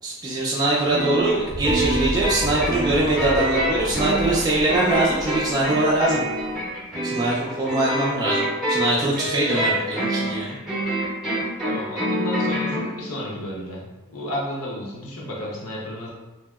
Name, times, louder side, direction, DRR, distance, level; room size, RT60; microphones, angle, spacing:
voice 1, 0.0-6.2 7.0-10.6, right 2 dB, 20° right, -6 dB, 0.3 m, -22 dB
sound 1, 0.9-12.9, right 1 dB, ahead, 0.7 m, -26 dB
sound 2, 1.1-6.6, equal, 55° left, 0.4 m, -32 dB
voice 2, 11.6-16.1, left 1 dB, 75° left, -4 dB, 0.8 m, -32 dB
2.8 x 2.7 x 2.3 m, 1.1 s
head